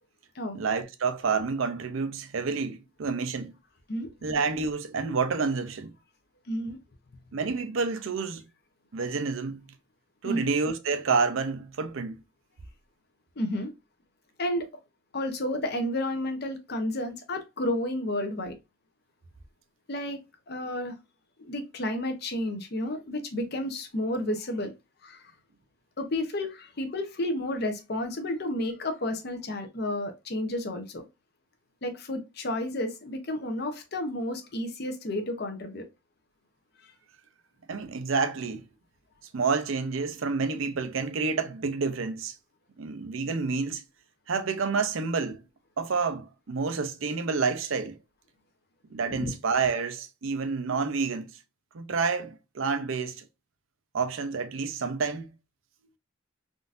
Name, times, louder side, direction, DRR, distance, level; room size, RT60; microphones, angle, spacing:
voice 1, 0.5-3.5 4.2-5.9 7.3-8.4 8.9-9.7 10.2-12.2 37.7-38.6 39.3-42.3 42.8-43.8 44.3-45.4 45.8-48.0 48.9-51.3 51.7-53.2 53.9-55.3, right 4 dB, 80° right, 0.5 m, -29 dB
voice 2, 6.5-6.8 10.2-10.5 13.4-13.7 14.4-14.7 15.1-18.6 19.9-20.9 21.4-24.7 25.0-25.2 26.0-31.0 31.8-35.9 49.1-49.3, left 1 dB, 55° left, 0.7 m, -31 dB
3.7 x 2.6 x 2.4 m
head